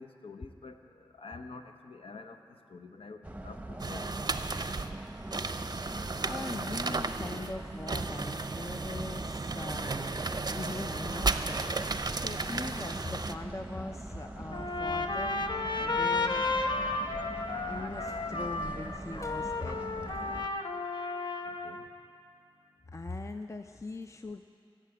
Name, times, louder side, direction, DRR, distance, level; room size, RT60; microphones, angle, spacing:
voice 1, 0.0-2.4 2.7-4.1 21.4-21.9, left 3 dB, 85° left, 7 dB, 0.8 m, -47 dB
sound 1, 3.2-20.5, right 1 dB, 15° right, 0.8 m, -43 dB
sound 2, 3.8-13.3, right 3 dB, 45° right, 0.5 m, -34 dB
voice 2, 5.7-10.2 10.5-16.5 17.7-19.8 22.9-24.4, left 2 dB, 35° left, 7 dB, 0.5 m, -41 dB
Trumpet, 14.5-21.8, left 3 dB, 55° left, 0.8 m, -33 dB
16.5 x 7.5 x 7.8 m, 2.5 s
wide cardioid pair, 50°, 9 cm